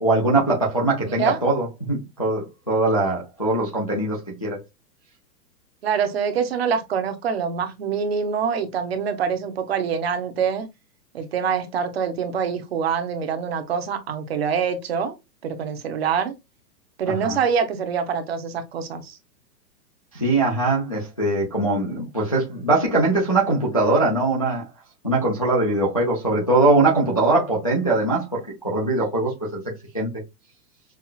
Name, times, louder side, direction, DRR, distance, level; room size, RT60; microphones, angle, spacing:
voice 1, 0.0-4.6 17.2-17.4 20.1-24.6 25.0-29.6 29.9-30.1, right 2 dB, 25° left, 0.4 m, -21 dB
voice 2, 1.0-1.4 5.8-10.7 11.1-15.1 15.4-16.3 17.0-19.2, right 6 dB, 40° right, 0.7 m, -25 dB
5.5 x 2.3 x 2.3 m
hypercardioid pair, 170°, 50 cm